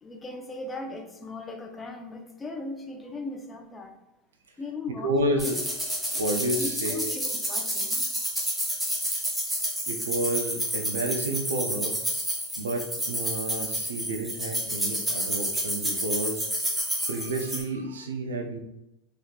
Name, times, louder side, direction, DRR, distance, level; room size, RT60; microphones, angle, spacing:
voice 1, 0.0-3.9 4.6-5.6 6.6-8.0, left 2 dB, 20° left, 3 dB, 0.6 m, -38 dB
voice 2, 5.0-5.6 6.1-7.1 9.9-12.0 12.6-16.4 16.9-18.6, right 1 dB, 80° right, 6 dB, 0.4 m, -30 dB
sound 1, 5.4-17.6, equal, 5° right, 1.0 m, -30 dB
3.2 x 2.9 x 2.3 m, 0.91 s
hypercardioid pair, 85°, 0 cm